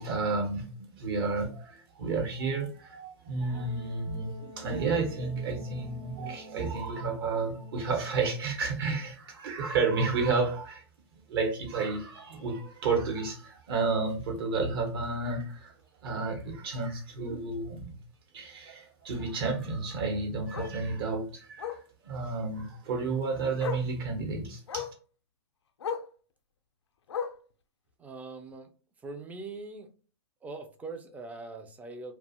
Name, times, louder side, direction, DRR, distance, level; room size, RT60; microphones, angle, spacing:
voice 1, 0.0-10.8 11.1-15.7 16.0-18.0 18.3-21.8 22.0-24.9, right 4 dB, 55° right, 2 dB, 1.1 m, -31 dB
Wind instrument woodwind instrument, 3.5-9.0, left 2 dB, 85° right, 0.8 m, -50 dB
Bark, 14.1-14.2 14.6-14.8 15.1-15.2 15.5-15.6 17.0-17.1 19.6-19.7 20.5-20.8 21.6-21.9 23.1-23.2 23.6-23.9 24.7-25.0 25.8-26.1 27.1-27.5 28.5-28.6, left 7 dB, 80° left, 0.4 m, -36 dB
voice 2, 28.0-28.7 29.0-29.9 30.4-32.1, right 3 dB, 10° right, 6 dB, 0.4 m, -42 dB
2.4 x 2.3 x 2.7 m, 0.38 s
hypercardioid pair, 120°, 14 cm